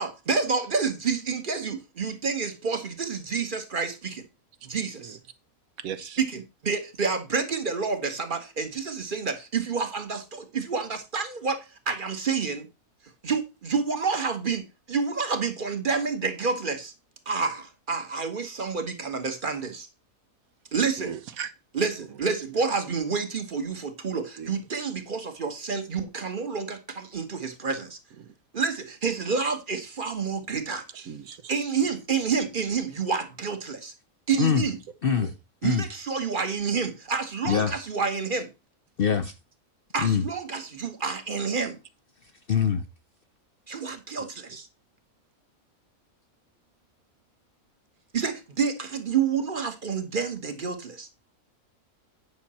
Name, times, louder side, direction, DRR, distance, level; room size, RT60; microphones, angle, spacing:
voice 1, 0.0-4.2 4.6-5.2 6.2-11.6 11.9-12.7 13.2-16.9 17.3-19.9 20.7-21.1 21.7-28.0 28.5-30.8 31.5-33.9 34.3-34.8 35.6-38.5 39.9-41.8 43.7-44.7 48.1-51.1, right 5 dB, 40° right, 1.3 m, -29 dB
voice 2, 5.8-6.2 21.0-21.5 22.0-22.2 24.4-24.5 24.8-24.9 28.2-28.3 30.9-31.5 34.3-34.4 35.1-35.3 44.2-44.3, right 8 dB, 75° right, 1.2 m, -38 dB
voice 3, 39.0-39.3 40.0-40.2 42.5-42.8, left 7 dB, 50° left, 0.7 m, -23 dB
9.6 x 5.9 x 4.2 m
omnidirectional pair, 1.5 m